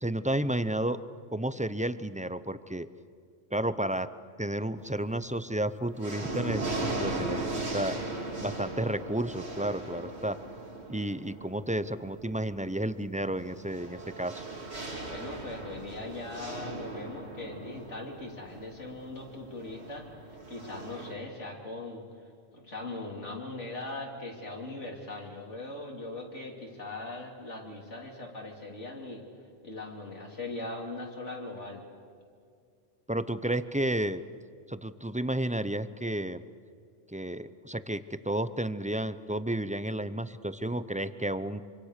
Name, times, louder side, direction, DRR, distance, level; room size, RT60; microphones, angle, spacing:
voice 1, 0.0-1.0 1.3-2.9 3.5-4.1 4.4-8.0 8.4-10.4 10.9-14.4 33.1-34.2 34.7-36.4 37.1-41.6, right 1 dB, 10° right, 13 dB, 0.4 m, -32 dB
sound 1, 4.8-5.3 5.7-21.1, right 2 dB, 60° right, 3.0 m, -38 dB
voice 2, 15.1-20.1 20.5-22.0 22.5-29.2 29.6-31.8, left 2 dB, 70° left, 0 dB, 3.8 m, -40 dB
26.0 x 25.5 x 6.7 m, 2.3 s
omnidirectional pair, 1.3 m